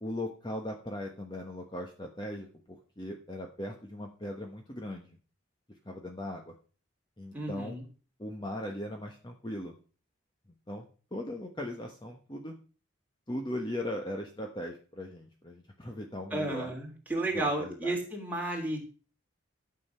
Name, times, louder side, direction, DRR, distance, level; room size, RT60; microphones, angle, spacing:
voice 1, 0.0-5.2 5.8-6.5 7.2-7.8 8.2-9.7 10.7-10.8 11.1-12.5 13.3-16.7 17.3-18.0, left 1 dB, 20° left, 2 dB, 1.2 m, -38 dB
voice 2, 7.3-7.8 16.3-18.8, right 2 dB, 10° right, -1 dB, 3.2 m, -33 dB
12.5 x 8.0 x 5.6 m, 0.38 s
head